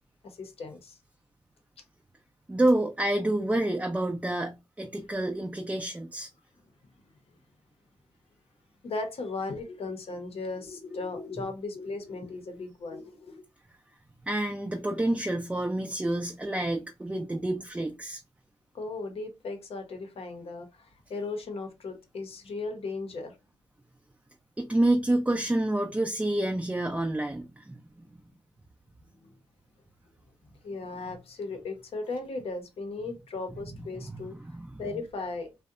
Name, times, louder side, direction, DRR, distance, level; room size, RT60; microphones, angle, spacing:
voice 1, 0.2-1.0 8.8-13.4 18.7-23.4 29.2-29.4 30.4-34.4 34.8-35.5, left 3 dB, 60° left, 0.7 m, -37 dB
voice 2, 2.5-6.3 14.3-18.2 24.6-27.8 34.0-34.3 34.5-34.8, right 1 dB, 10° right, 0.4 m, -28 dB
2.7 x 2.1 x 2.4 m
cardioid pair, 60°, 11 cm